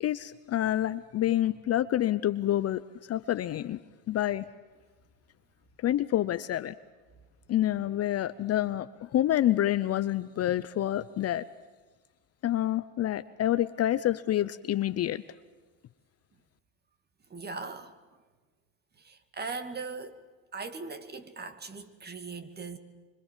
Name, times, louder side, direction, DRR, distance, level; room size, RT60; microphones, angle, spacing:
voice 1, 0.0-2.8 3.1-3.8 4.1-4.5 5.8-6.7 7.5-11.4 12.4-15.2, left 12 dB, 35° left, 0.8 m, -28 dB
voice 2, 17.3-17.9 19.0-20.2 20.5-22.8, right 4 dB, 25° right, 2.4 m, -39 dB
26.0 x 25.0 x 7.5 m
supercardioid pair, 100°, 41 cm